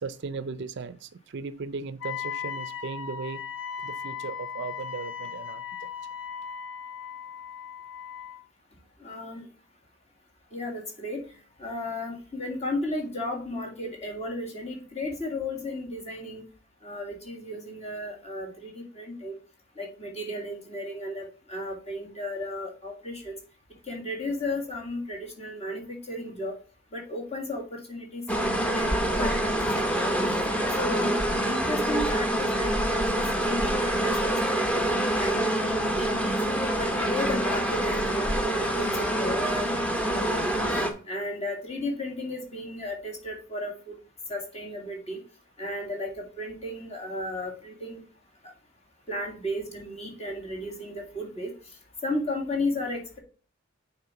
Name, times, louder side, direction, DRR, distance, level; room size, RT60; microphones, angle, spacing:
voice 1, 0.0-3.4 3.8-5.9, right 4 dB, 55° right, 0.4 m, -37 dB
Wind instrument woodwind instrument, 2.0-8.4, left 7 dB, 60° left, 0.6 m, -37 dB
voice 2, 9.0-9.4 10.5-11.2 11.6-16.4 16.8-19.4 19.8-23.3 23.9-26.5 26.9-28.5 28.8-28.9 29.1-30.1 30.8-31.2 31.4-36.4 36.8-39.7 40.1-40.6 41.1-43.9 44.3-45.2 45.6-48.0 49.1-51.5 52.0-53.2, left 1 dB, 30° left, 2.1 m, -34 dB
sound 1, 28.3-40.9, right 1 dB, 5° left, 0.9 m, -26 dB
6.7 x 4.2 x 5.7 m
head